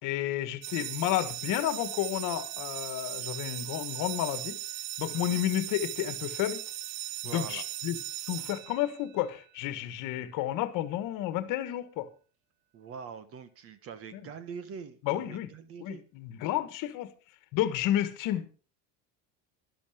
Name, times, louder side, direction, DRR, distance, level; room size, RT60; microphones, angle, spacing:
voice 1, 0.0-4.6 5.0-6.6 7.2-8.0 8.3-12.1 14.1-14.2 15.0-15.5 15.8-17.1 17.5-18.6, left 13 dB, 50° left, 1.6 m, -31 dB
sound 1, 0.6-9.3, right 13 dB, 85° right, 1.2 m, -38 dB
voice 2, 5.1-5.4 7.2-7.6 12.7-16.0, right 6 dB, 35° right, 1.3 m, -43 dB
11.5 x 11.5 x 5.0 m
cardioid pair, 165°, 40 cm